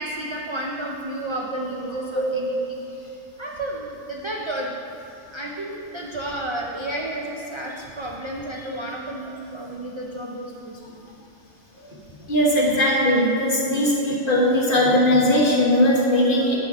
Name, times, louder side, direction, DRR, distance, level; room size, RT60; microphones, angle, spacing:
voice 1, 0.0-3.1 3.4-4.7 5.3-11.0, right 1 dB, 50° right, -2 dB, 0.3 m, -32 dB
voice 2, 12.3-16.6, left 1 dB, 45° left, -5 dB, 1.5 m, -19 dB
9.0 x 5.9 x 3.6 m, 2.7 s
omnidirectional pair, 1.3 m